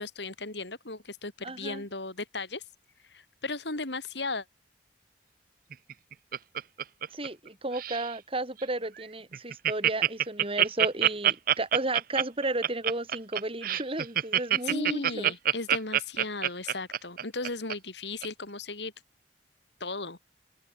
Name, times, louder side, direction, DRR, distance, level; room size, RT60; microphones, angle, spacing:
voice 1, 0.0-2.6 3.1-4.4 14.6-18.9 19.8-20.2, left 3 dB, 75° left, 3.8 m, -36 dB
voice 2, 1.4-1.8 7.1-15.3, right 2 dB, 30° right, 4.9 m, -33 dB
Laughter, 5.7-7.5 7.7-8.1 8.6-8.7 9.0-9.1 9.3-17.7 18.2-18.3, right 11 dB, 55° right, 0.6 m, -26 dB
open air
head